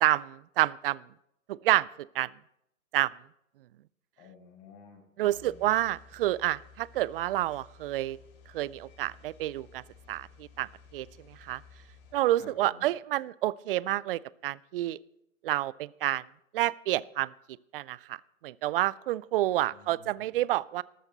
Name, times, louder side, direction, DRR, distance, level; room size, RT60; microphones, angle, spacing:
voice 1, 0.0-1.0 1.5-1.9 2.1-2.3 2.9-3.1 5.2-8.2 8.5-9.8 10.1-11.6 12.1-15.0 15.4-16.2 16.5-17.3 17.7-18.2 18.4-20.8, right 15 dB, 45° right, 22 dB, 0.4 m, -29 dB
voice 2, 4.2-5.7 12.4-12.8 19.7-20.3, left 4 dB, 45° left, 0 dB, 6.6 m, -52 dB
sound 1, 5.3-12.2, left 5 dB, 70° left, 4.1 m, -55 dB
13.5 x 13.5 x 3.9 m, 0.80 s
hypercardioid pair, 125°, 43 cm